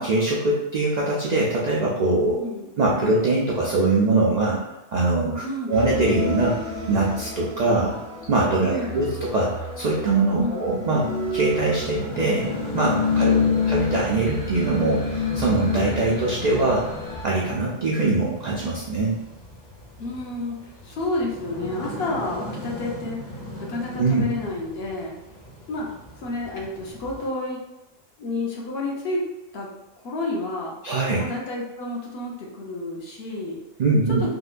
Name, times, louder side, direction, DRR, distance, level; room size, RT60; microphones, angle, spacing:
voice 1, 0.0-2.4 2.8-4.6 4.9-6.6 6.9-8.0 8.3-9.1 9.3-11.1 11.3-12.5 12.7-13.3 13.7-16.8 17.2-19.2 23.9-24.2 30.8-31.3 33.8-34.2, right 2 dB, 85° right, -4 dB, 0.3 m, -22 dB
voice 2, 2.3-2.7 5.4-5.8 8.6-9.2 10.4-10.7 13.2-13.7 20.0-25.1 25.7-25.9 26.2-27.6 28.2-29.2 29.5-29.7 30.0-30.8 31.2-33.6, left 2 dB, 60° left, -3 dB, 0.8 m, -30 dB
sound 1, 5.7-17.2, left 4 dB, 80° left, 2.1 m, -28 dB
sound 2, 10.9-27.3, left 1 dB, 25° left, 0.7 m, -39 dB
3.7 x 2.1 x 2.4 m, 1.0 s
omnidirectional pair, 1.3 m